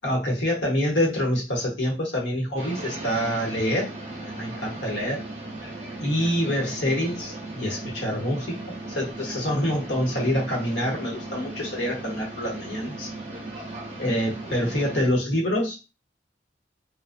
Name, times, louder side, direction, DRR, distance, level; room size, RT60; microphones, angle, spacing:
voice 1, 0.0-3.9 4.3-5.2 6.0-8.6 8.8-13.1 14.0-15.8, equal, 75° left, -1 dB, 1.0 m, -26 dB
sound 1, 2.6-15.0, right 2 dB, 35° right, 0.6 m, -37 dB
2.5 x 2.1 x 2.5 m, 0.29 s
head